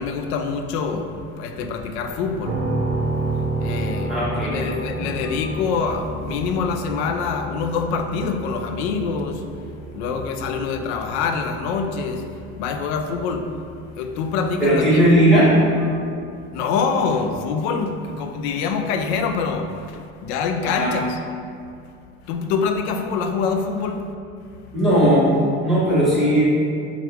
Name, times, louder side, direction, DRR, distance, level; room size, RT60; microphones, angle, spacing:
voice 1, 0.0-12.3 12.6-13.6 14.0-15.5 16.5-21.2 22.3-24.1, left 5 dB, 90° left, 6 dB, 0.5 m, -25 dB
sound 1, 2.4-16.2, right 2 dB, 55° right, 0.6 m, -31 dB
voice 2, 4.1-4.6 4.9-5.4 14.6-15.5 15.8-16.1 20.6-20.9 24.7-26.4, right 1 dB, ahead, -11 dB, 1.3 m, -18 dB
5.9 x 2.5 x 3.4 m, 2.3 s
cardioid pair, 135°, 32 cm